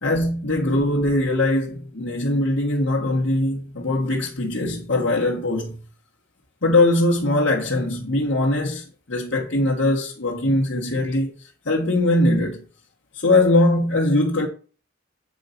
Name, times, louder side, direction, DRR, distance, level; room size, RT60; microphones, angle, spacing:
voice 1, 0.0-5.8 6.6-12.7 13.1-14.5, left 2 dB, 80° left, 1.5 m, -21 dB
8.6 x 3.9 x 5.8 m
head